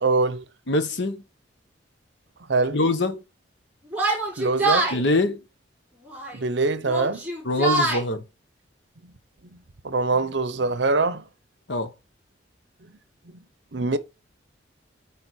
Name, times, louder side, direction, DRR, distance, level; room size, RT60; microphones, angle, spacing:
voice 1, 0.0-0.4 2.5-2.8 4.4-4.9 6.3-7.2 9.0-9.1 9.8-11.2 13.7-14.0, right 3 dB, 70° right, 0.7 m, -23 dB
voice 2, 0.7-1.2 2.7-3.2 4.9-5.4 7.4-8.2 11.7-11.9, left 2 dB, 70° left, 1.0 m, -23 dB
Yell, 3.9-5.0 6.0-6.4 6.8-8.0, right 2 dB, 5° right, 4.6 m, -24 dB
9.2 x 3.5 x 4.2 m
head